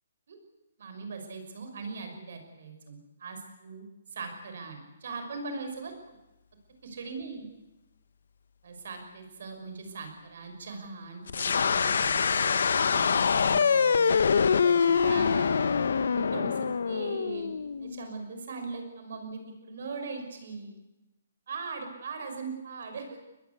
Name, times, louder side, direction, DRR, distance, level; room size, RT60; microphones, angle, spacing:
voice 1, 0.8-6.2 6.8-7.5 8.6-14.1 14.5-15.8 16.1-17.5 17.8-20.8 21.5-23.2, right 4 dB, 60° right, 6 dB, 6.1 m, -40 dB
sound 1, 11.3-18.1, left 6 dB, 75° left, 1.2 m, -25 dB
23.5 x 20.5 x 8.4 m, 0.99 s
hypercardioid pair, 170°, 0 cm